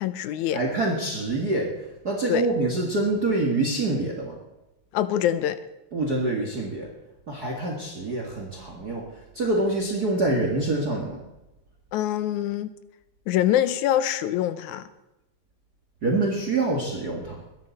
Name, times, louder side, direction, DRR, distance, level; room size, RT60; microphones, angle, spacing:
voice 1, 0.0-0.6 2.3-2.5 4.9-5.6 11.9-12.7 13.3-14.9, left 11 dB, 75° left, 13 dB, 2.0 m, -24 dB
voice 2, 0.5-1.7 2.0-4.3 5.9-6.9 7.3-9.1 9.3-11.2 16.0-17.4, right 2 dB, 35° right, 0 dB, 1.9 m, -26 dB
21.5 x 11.0 x 4.2 m, 0.95 s
omnidirectional pair, 3.6 m